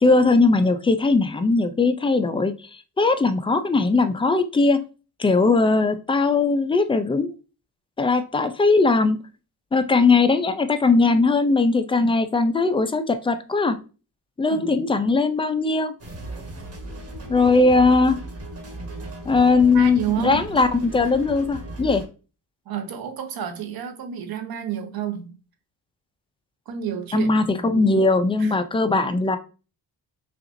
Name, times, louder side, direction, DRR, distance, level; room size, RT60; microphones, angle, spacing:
voice 1, 0.0-2.5 3.0-4.8 5.2-7.3 8.0-9.2 9.7-13.8 14.4-15.9 17.3-18.2 19.3-22.0 27.1-29.4, left 3 dB, 15° left, 0.4 m, -19 dB
sound 1, 16.0-22.1, right 2 dB, 35° right, 1.5 m, -36 dB
voice 2, 19.7-20.4 22.7-25.3 26.7-28.5, right 8 dB, 60° right, 1.0 m, -31 dB
5.8 x 2.5 x 2.6 m
cardioid pair, 110°, 41 cm